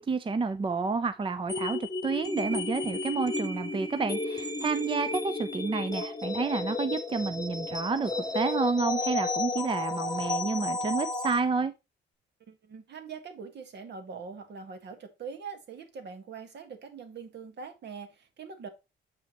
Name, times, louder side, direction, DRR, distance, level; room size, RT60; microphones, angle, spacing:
voice 1, 0.0-11.7, right 4 dB, 25° right, 0.6 m, -30 dB
sound 1, 1.5-11.4, left 2 dB, 20° left, 1.0 m, -33 dB
voice 2, 12.4-18.7, right 5 dB, 60° right, 1.8 m, -43 dB
7.7 x 5.6 x 3.0 m
cardioid pair, 90°, 20 cm